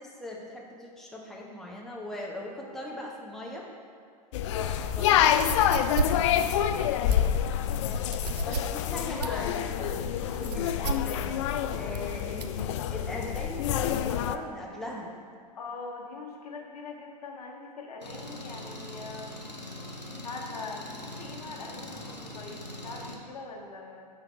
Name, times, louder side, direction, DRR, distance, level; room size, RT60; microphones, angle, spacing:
voice 1, 0.0-3.7 4.9-5.3 6.0-6.3 8.4-11.3 11.7-15.1, left 1 dB, ahead, -3 dB, 1.1 m, -40 dB
sound 1, 4.3-14.4, left 10 dB, 45° left, 0.4 m, -27 dB
voice 2, 4.5-5.1 7.8-8.3 11.5-12.2 15.6-19.5 20.2-24.1, left 3 dB, 65° left, 1 dB, 1.2 m, -42 dB
sound 2, 5.3-12.6, right 5 dB, 75° right, 0.6 m, -34 dB
Engine, 18.0-23.2, left 1 dB, 90° left, 1.0 m, -42 dB
9.0 x 4.7 x 4.6 m, 2.2 s
figure-of-eight pair, 95°, 21 cm